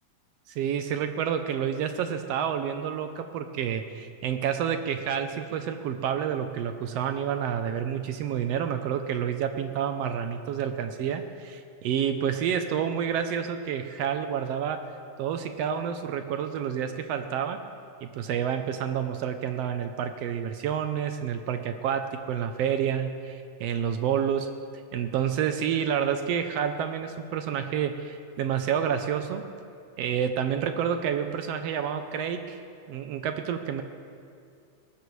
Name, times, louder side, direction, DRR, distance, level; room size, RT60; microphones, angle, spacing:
voice 1, 0.5-14.8 15.2-17.6 18.0-24.5 24.9-29.4 30.0-32.6 32.9-33.8, right 8 dB, 75° right, 7 dB, 1.5 m, -29 dB
21.0 x 18.5 x 3.2 m, 2.3 s
omnidirectional pair, 3.4 m